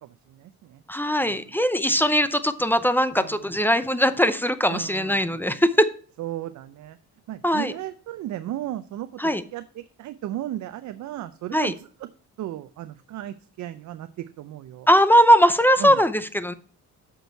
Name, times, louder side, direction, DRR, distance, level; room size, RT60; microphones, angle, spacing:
voice 1, 0.0-0.8 1.2-1.5 1.9-2.0 3.1-3.5 4.7-5.4 6.2-7.0 7.3-9.2 9.5-11.9 12.4-14.9 15.8-16.0, right 13 dB, 70° right, 11 dB, 0.6 m, -35 dB
voice 2, 0.9-5.9 7.4-7.7 9.2-9.4 11.5-11.7 14.9-16.5, equal, 5° left, 13 dB, 0.6 m, -20 dB
8.1 x 6.2 x 4.5 m, 0.43 s
cardioid pair, 90°, 30 cm